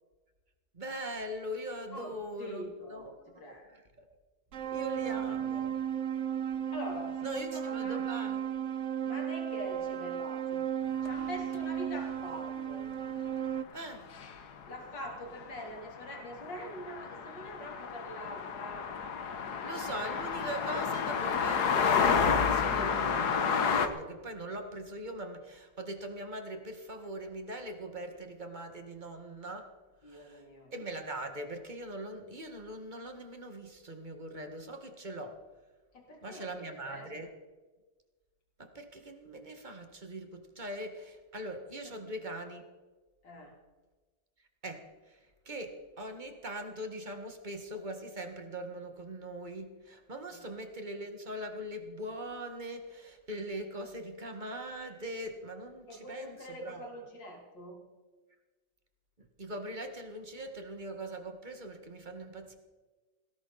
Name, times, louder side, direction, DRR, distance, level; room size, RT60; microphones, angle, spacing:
voice 1, 0.7-4.1 4.6-5.7 7.2-8.4 13.7-14.1 19.6-29.7 30.1-30.5 30.7-35.4 36.2-37.3 38.6-42.6 44.6-56.9 59.2-62.6, right 1 dB, 25° right, 5 dB, 1.9 m, -41 dB
voice 2, 1.9-3.7 5.0-5.3 6.7-8.0 9.0-10.6 11.0-12.8 14.7-18.9 30.0-30.7 35.9-37.3 41.8-42.0 43.2-43.6 50.3-50.4 55.9-57.8, equal, 80° left, -1 dB, 4.0 m, -44 dB
sound 1, 4.5-13.6, right 9 dB, 50° right, 1.0 m, -34 dB
sound 2, 11.1-11.2 11.5-11.6 14.2-14.3 14.6-14.8 15.1-23.9, left 6 dB, 65° left, 1.7 m, -30 dB
18.0 x 17.0 x 4.2 m, 1.3 s
omnidirectional pair, 2.0 m